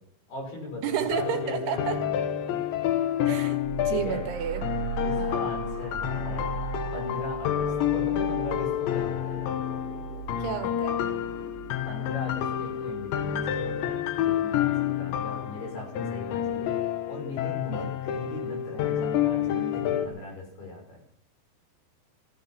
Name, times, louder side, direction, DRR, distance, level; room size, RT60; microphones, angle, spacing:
voice 1, 0.3-1.8 2.1-2.2 3.9-4.2 5.0-6.5 6.9-9.4 11.9-21.0, left 2 dB, 65° left, 1 dB, 8.0 m, -38 dB
voice 2, 0.8-2.0 3.3-4.6 5.2-5.5 10.4-11.1 17.7-17.9, right 9 dB, 75° right, 8 dB, 3.4 m, -32 dB
sound 1, 1.1-20.1, left 10 dB, 90° left, 3.6 m, -29 dB
sound 2, 3.6-15.0, right 10 dB, 55° right, 1.6 m, -39 dB
16.0 x 14.0 x 5.8 m, 0.67 s
omnidirectional pair, 5.0 m